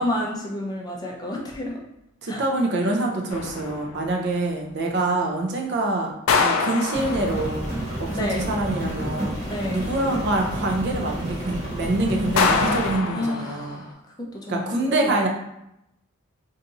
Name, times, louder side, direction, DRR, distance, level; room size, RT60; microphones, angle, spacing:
voice 1, 0.0-1.7 2.3-2.4 8.1-8.5 9.5-9.9 13.1-15.1, left 1 dB, 20° left, -1 dB, 0.5 m, -30 dB
voice 2, 2.2-6.1 6.4-7.7 8.0-9.4 9.7-13.8 14.5-15.3, right 2 dB, 50° right, 1 dB, 0.6 m, -25 dB
sound 1, 3.3-4.2 6.3-7.8 12.4-13.9, left 5 dB, 70° left, 0.4 m, -25 dB
Rain, 6.9-13.0, right 1 dB, 35° right, 1.1 m, -30 dB
2.7 x 2.4 x 4.0 m, 0.83 s
head